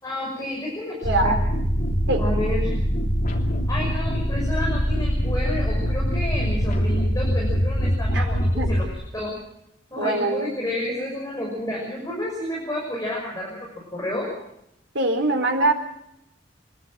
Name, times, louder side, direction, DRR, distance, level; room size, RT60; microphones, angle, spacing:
voice 1, 0.0-1.3 2.2-2.7 3.7-8.9 9.1-9.3 9.9-14.3, left 1 dB, 20° left, -3 dB, 6.1 m, -30 dB
sound 1, 1.0-8.9, equal, 45° left, 3.2 m, -23 dB
voice 2, 1.0-1.4 2.1-2.2 8.1-8.7 10.0-10.5 14.9-15.7, right 2 dB, 70° right, 3 dB, 4.0 m, -23 dB
28.0 x 12.0 x 9.0 m, 0.79 s
head